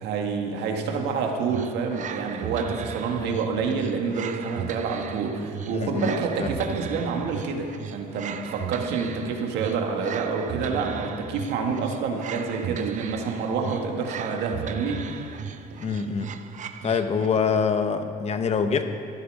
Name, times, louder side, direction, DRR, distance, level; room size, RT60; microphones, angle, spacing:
voice 1, 0.0-15.2, right 5 dB, 85° right, 2 dB, 1.7 m, -28 dB
sound 1, 1.5-17.4, right 8 dB, 45° right, 0.7 m, -37 dB
voice 2, 5.7-6.1 6.4-6.5 15.8-16.3 16.8-18.8, left 6 dB, 40° left, 8 dB, 1.0 m, -25 dB
14.0 x 11.0 x 5.4 m, 2.4 s
cardioid pair, 110°, 17 cm